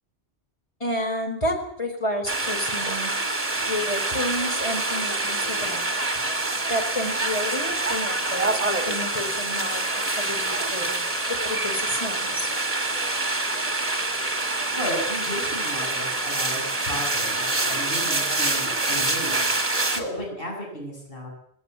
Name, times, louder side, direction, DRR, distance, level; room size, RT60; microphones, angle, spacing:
voice 1, 0.8-3.1 3.6-5.9 6.7-12.5, left 1 dB, 30° left, 3 dB, 4.7 m, -30 dB
sound 1, 2.3-20.0, right 2 dB, 35° right, 2.5 m, -26 dB
voice 2, 14.7-21.3, equal, 55° left, -2 dB, 8.1 m, -34 dB
20.0 x 18.5 x 8.2 m, 0.69 s
omnidirectional pair, 1.1 m